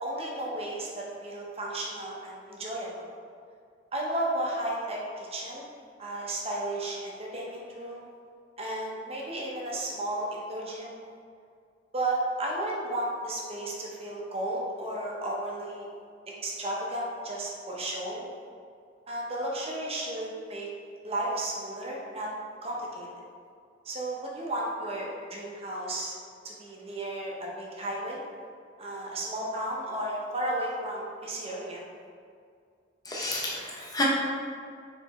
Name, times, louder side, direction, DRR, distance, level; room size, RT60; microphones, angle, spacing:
voice 1, 0.0-3.0 3.9-5.7 6.0-8.1 8.6-11.0 11.9-15.9 16.4-18.3 19.1-20.7 21.0-22.3 22.6-23.1 23.8-26.1 26.4-28.2 28.8-31.8, right 1 dB, 35° right, -3 dB, 0.8 m, -33 dB
voice 2, 33.1-34.0, left 2 dB, 20° left, -5 dB, 0.6 m, -31 dB
4.2 x 3.9 x 3.1 m, 2.2 s
head